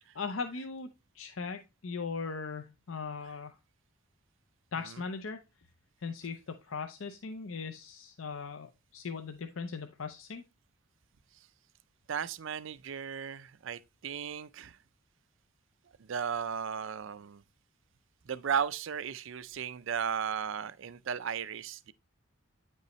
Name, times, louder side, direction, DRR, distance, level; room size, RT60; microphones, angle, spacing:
voice 1, 0.2-0.9 1.1-3.6 4.7-5.4 6.0-10.4, left 5 dB, 70° left, 0.6 m, -39 dB
voice 2, 12.1-14.8 16.0-17.4 18.3-21.9, right 7 dB, 60° right, 0.4 m, -35 dB
9.3 x 5.4 x 3.1 m
head